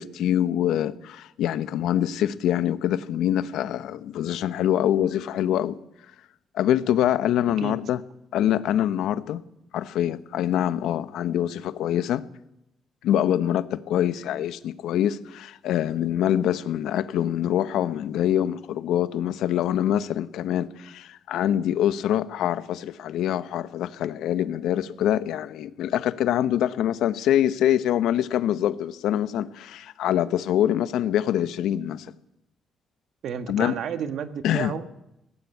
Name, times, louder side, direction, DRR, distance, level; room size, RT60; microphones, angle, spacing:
voice 1, 0.0-5.8 6.5-8.0 8.3-9.4 9.7-12.2 13.0-32.1 33.5-33.7 34.4-34.7, left 11 dB, 85° left, 13 dB, 1.0 m, -25 dB
voice 2, 33.2-34.9, right 8 dB, 70° right, 9 dB, 1.7 m, -31 dB
20.0 x 17.5 x 8.5 m, 0.87 s
cardioid pair, 90°, 0 cm